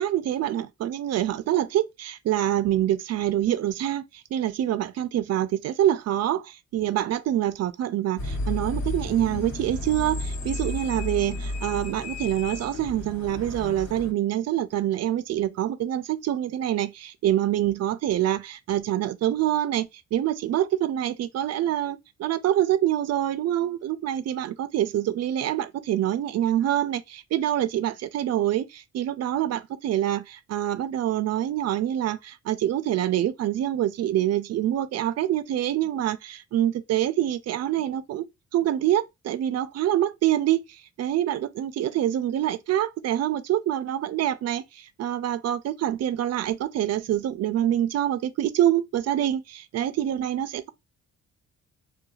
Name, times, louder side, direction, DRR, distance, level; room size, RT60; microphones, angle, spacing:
voice 1, 0.0-38.2 38.5-50.7, right 12 dB, 55° right, 0.4 m, -26 dB
sound 1, 8.2-14.1, left 1 dB, 70° left, 1.3 m, -32 dB
3.0 x 2.3 x 2.3 m
cardioid pair, 90°, 30 cm